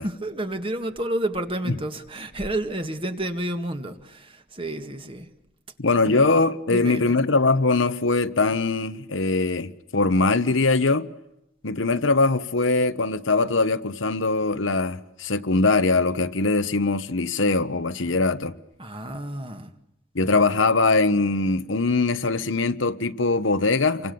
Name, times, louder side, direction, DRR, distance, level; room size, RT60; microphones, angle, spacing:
voice 1, 0.0-5.3 6.0-6.3 6.7-7.2 18.8-19.7, right 1 dB, 30° right, 1.9 m, -30 dB
voice 2, 5.8-11.1 11.6-18.5 20.1-24.1, left 3 dB, 85° left, 1.3 m, -22 dB
28.5 x 24.5 x 7.0 m
head